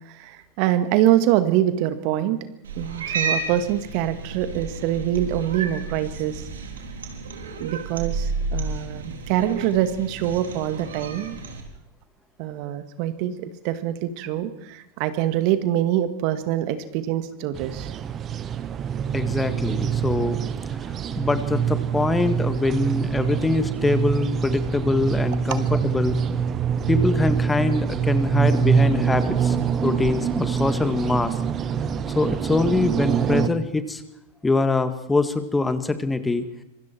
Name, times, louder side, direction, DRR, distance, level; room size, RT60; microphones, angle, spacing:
voice 1, 0.1-2.4 2.8-6.4 7.6-11.4 12.4-17.9, right 12 dB, 50° right, 10 dB, 2.0 m, -24 dB
Cat, 2.6-11.6, right 3 dB, 70° right, 4.3 m, -32 dB
sound 1, 17.5-33.5, right 7 dB, 30° right, 1.3 m, -24 dB
voice 2, 19.1-20.4 21.2-26.2 26.9-31.3 32.1-34.0 34.4-36.5, left 3 dB, 10° left, 10 dB, 1.9 m, -23 dB
26.0 x 24.0 x 4.6 m, 0.82 s
figure-of-eight pair, 90°, 0 cm